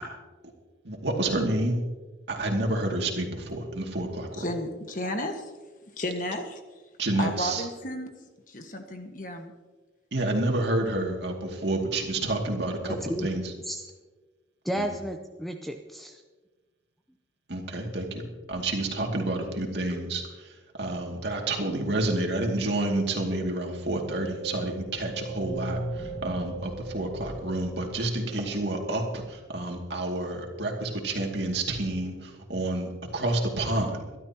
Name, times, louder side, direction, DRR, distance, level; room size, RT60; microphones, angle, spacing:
voice 1, 0.9-1.8 2.3-4.4 7.0-7.6 10.1-13.0 13.2-13.4 14.8-14.9 17.5-20.2 20.8-25.8 26.2-29.0 29.5-32.1 32.5-34.0, right 2 dB, 70° right, 1 dB, 2.4 m, -29 dB
voice 2, 4.4-5.4 6.0-6.6 7.2-8.1 8.5-9.5, left 1 dB, 45° left, 5 dB, 1.5 m, -32 dB
voice 3, 12.9-13.3 13.7-13.8 14.6-16.2, equal, ahead, 4 dB, 0.6 m, -32 dB
sound 1, 23.8-28.4, right 2 dB, 35° right, 2.5 m, -38 dB
24.0 x 12.0 x 3.0 m, 1.3 s
head